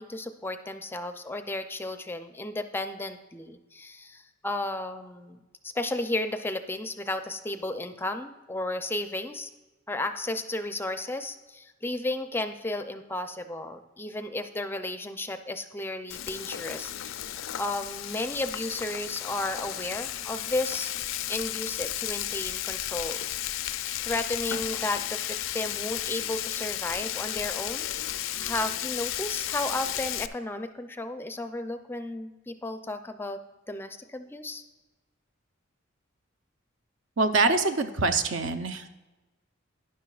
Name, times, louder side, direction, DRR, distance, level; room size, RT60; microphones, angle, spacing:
voice 1, 0.0-9.5 9.9-20.9 21.3-23.2 24.0-27.9 28.2-33.4 33.7-34.6, left 2 dB, 10° left, 8 dB, 0.4 m, -33 dB
Frying (food), 16.1-30.3, left 12 dB, 80° left, 0.4 m, -33 dB
voice 2, 37.2-38.9, right 3 dB, 70° right, 8 dB, 0.7 m, -25 dB
12.0 x 10.5 x 2.4 m, 1.1 s
head